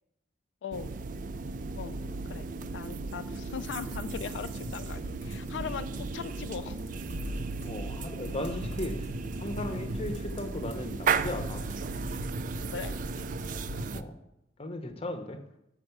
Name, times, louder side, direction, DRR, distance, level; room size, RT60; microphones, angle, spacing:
voice 1, 0.6-1.0 1.8-2.5 2.7-6.8 12.7-12.9, left 6 dB, 85° left, 10 dB, 0.3 m, -39 dB
sound 1, 0.7-14.0, right 4 dB, 45° right, 0.3 m, -35 dB
sound 2, 3.8-13.8, equal, 85° right, 2.3 m, -41 dB
voice 2, 7.6-9.1 9.4-11.7 13.9-14.2 14.6-15.4, left 1 dB, 35° left, 8 dB, 0.8 m, -36 dB
6.6 x 6.3 x 5.8 m, 0.84 s
head